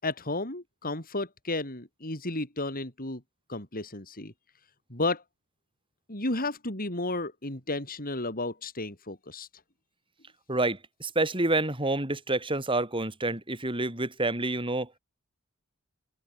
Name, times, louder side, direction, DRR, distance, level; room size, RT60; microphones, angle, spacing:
voice 1, 0.0-3.2 3.5-4.3 4.9-5.2 6.1-9.5, left 2 dB, 40° left, 7.5 m, -33 dB
voice 2, 10.5-14.9, right 2 dB, 25° right, 5.1 m, -28 dB
head